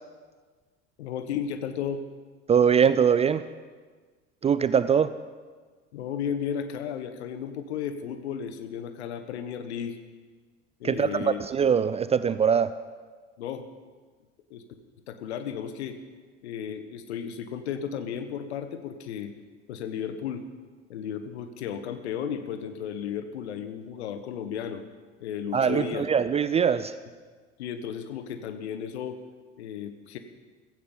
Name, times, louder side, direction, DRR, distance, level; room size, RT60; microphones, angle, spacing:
voice 1, 1.0-2.0 5.9-10.0 10.8-11.7 13.4-13.6 14.5-14.6 15.1-16.0 16.4-19.3 19.7-20.4 20.9-24.8 25.2-26.1 27.6-29.2 29.6-30.2, left 8 dB, 65° left, 9 dB, 1.4 m, -34 dB
voice 2, 2.5-3.4 4.4-5.1 10.8-12.7 25.5-27.0, right 7 dB, 20° right, 14 dB, 0.4 m, -22 dB
15.5 x 15.0 x 5.5 m, 1.5 s
figure-of-eight pair, 65°, 35 cm